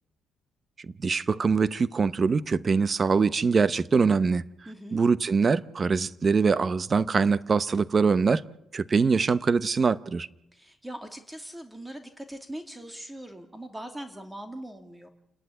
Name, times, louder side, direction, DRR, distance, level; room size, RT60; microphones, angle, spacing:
voice 1, 1.0-4.4 4.9-8.4 8.7-10.3, right 5 dB, 35° right, 0.9 m, -23 dB
voice 2, 4.7-5.0 10.5-15.1, right 1 dB, 10° right, 2.5 m, -41 dB
28.0 x 11.0 x 9.9 m
cardioid pair, 90°, 0 cm